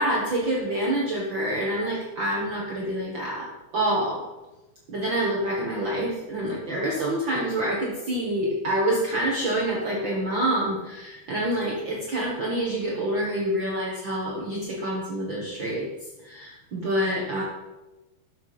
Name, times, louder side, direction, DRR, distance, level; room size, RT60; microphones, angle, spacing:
voice 1, 0.0-4.2 4.9-15.9 16.2-17.4, right 1 dB, 75° right, -3 dB, 1.0 m, -27 dB
12.0 x 6.3 x 4.9 m, 1.1 s
omnidirectional pair, 4.3 m